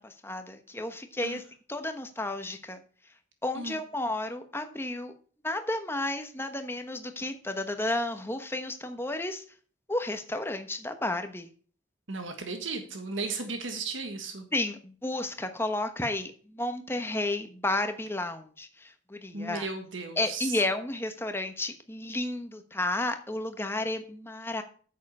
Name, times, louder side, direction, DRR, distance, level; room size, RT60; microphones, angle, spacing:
voice 1, 0.0-1.4 1.7-2.8 3.4-5.1 5.4-9.4 9.9-11.5 14.5-19.7 20.2-24.6, left 2 dB, 10° left, 7 dB, 1.1 m, -32 dB
voice 2, 12.1-14.5 19.3-20.6, right 3 dB, 80° right, 5 dB, 1.6 m, -35 dB
9.0 x 7.6 x 5.5 m, 0.43 s
head